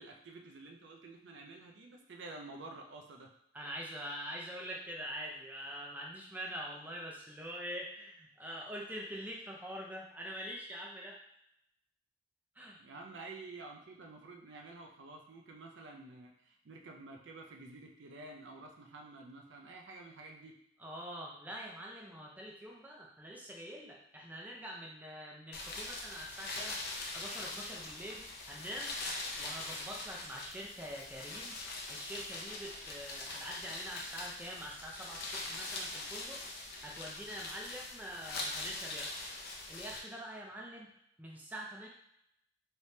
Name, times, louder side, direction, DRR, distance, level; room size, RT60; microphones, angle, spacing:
voice 1, 0.0-3.3 12.8-20.6, right 2 dB, 65° right, 2 dB, 0.5 m, -50 dB
voice 2, 3.5-11.2 12.6-12.8 20.8-26.7 27.1-28.9 29.4-31.6 31.9-36.4 36.8-39.1 39.7-40.9 41.2-41.9, equal, 10° right, -2 dB, 0.5 m, -45 dB
sound 1, 25.5-40.0, left 2 dB, 55° left, 0.6 m, -42 dB
3.3 x 3.1 x 2.7 m, 0.76 s
head